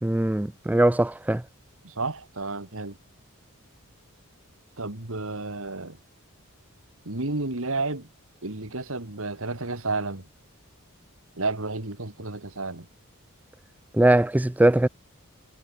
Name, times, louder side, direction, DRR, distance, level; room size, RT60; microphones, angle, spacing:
voice 1, 0.0-1.4 13.9-14.9, right 1 dB, 5° right, 0.3 m, -21 dB
voice 2, 1.8-3.0 4.8-6.0 7.1-8.1 8.4-10.3 11.4-12.9, right 3 dB, 65° right, 2.3 m, -31 dB
head